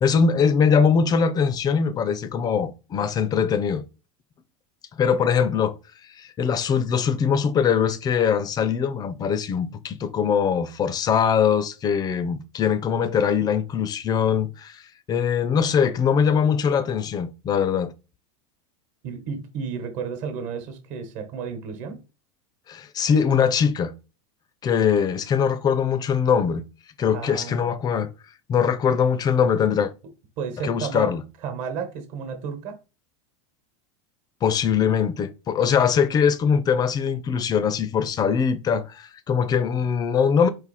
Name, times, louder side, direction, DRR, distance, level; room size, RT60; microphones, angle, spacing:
voice 1, 0.0-3.8 4.9-5.7 6.2-14.8 15.1-17.9 22.7-23.9 24.6-26.6 27.0-28.1 28.5-29.9 30.6-31.2 34.4-40.5, left 7 dB, 25° left, 0.5 m, -22 dB
voice 2, 19.0-22.0 27.1-27.6 28.9-29.0 30.4-31.1 31.4-32.8, right 6 dB, 50° right, 1.2 m, -32 dB
4.1 x 2.6 x 4.1 m
supercardioid pair, 130°, 16 cm